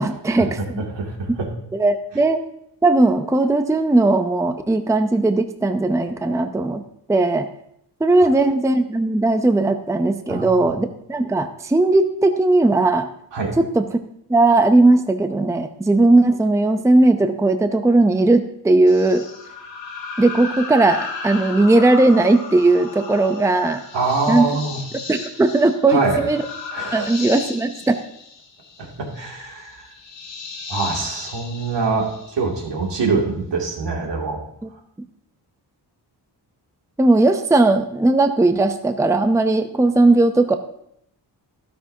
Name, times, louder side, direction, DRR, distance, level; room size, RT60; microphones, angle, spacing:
voice 1, 0.0-0.8 1.7-2.4 2.8-6.8 7.1-7.5 8.0-13.1 13.6-14.0 14.3-19.3 20.2-23.8 24.3-24.5 25.1-26.4 26.9-28.0 34.6-34.7 37.0-40.6, right 2 dB, 5° right, 8 dB, 0.6 m, -17 dB
voice 2, 0.8-1.5 10.3-10.7 13.3-13.6 23.9-24.8 25.9-26.2 26.7-27.1 28.8-29.9 30.7-34.4, right 3 dB, 80° right, -1 dB, 2.6 m, -24 dB
sound 1, 18.9-32.7, left 4 dB, 85° left, 1.9 m, -35 dB
12.5 x 12.0 x 2.8 m, 0.74 s
cardioid pair, 100°, 42 cm